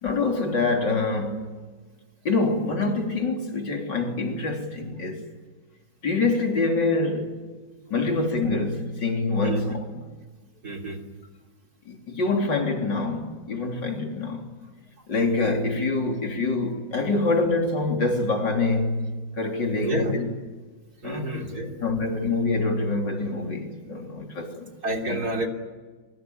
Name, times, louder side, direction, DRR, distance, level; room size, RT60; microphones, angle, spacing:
voice 1, 0.0-1.6 2.2-5.2 6.0-7.4 7.9-9.8 11.9-14.5 15.1-20.3 21.0-21.3 21.8-24.7 25.1-25.3, left 3 dB, 70° left, 4.2 m, -25 dB
voice 2, 10.6-11.0 19.8-20.1 21.0-21.8 24.8-25.5, right 1 dB, 55° right, 3.7 m, -29 dB
24.0 x 23.5 x 9.6 m
omnidirectional pair, 2.0 m